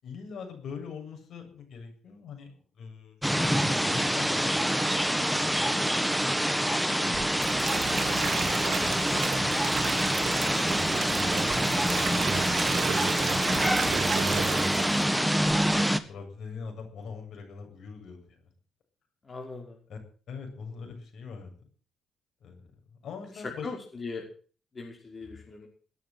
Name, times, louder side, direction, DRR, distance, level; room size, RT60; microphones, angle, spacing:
voice 1, 0.0-4.8 5.4-6.0 6.4-6.7 7.0-7.5 8.0-8.4 8.8-10.3 10.6-12.5 16.1-18.4 19.9-20.0 20.3-21.7 22.4-23.7, left 5 dB, 65° left, 3 dB, 7.7 m, -44 dB
sound 1, 3.2-16.0, equal, ahead, 1.6 m, -26 dB
voice 2, 6.8-7.3 19.2-19.8 23.6-24.2 24.7-25.7, left 4 dB, 30° left, 0 dB, 5.3 m, -40 dB
sound 2, 7.1-15.1 15.4-15.8, right 7 dB, 60° right, 2.6 m, -33 dB
18.5 x 9.8 x 8.0 m, 0.42 s
cardioid pair, 90°, 0 cm